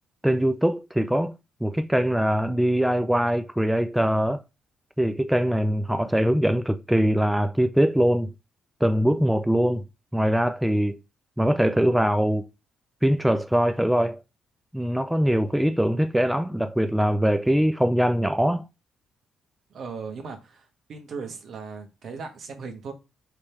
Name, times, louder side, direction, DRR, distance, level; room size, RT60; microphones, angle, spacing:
voice 1, 0.2-1.3 1.6-4.4 5.0-8.3 8.8-9.8 10.1-11.0 11.4-12.5 13.0-14.2 14.7-18.7, equal, 5° right, 0.4 m, -22 dB
voice 2, 19.7-22.9, right 5 dB, 60° right, 1.3 m, -37 dB
3.5 x 3.2 x 4.3 m
cardioid pair, 90°, 0 cm